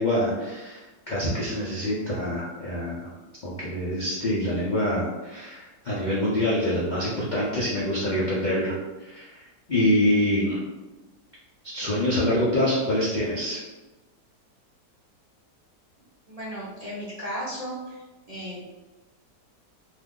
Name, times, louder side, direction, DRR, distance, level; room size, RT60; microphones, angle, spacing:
voice 1, 0.0-3.1 3.4-8.7 9.0-10.6 11.7-13.6, left 1 dB, 75° left, -7 dB, 0.4 m, -25 dB
voice 2, 16.3-18.0 18.3-18.6, equal, 35° right, -8 dB, 0.6 m, -35 dB
2.7 x 2.5 x 3.6 m, 1.1 s
omnidirectional pair, 1.8 m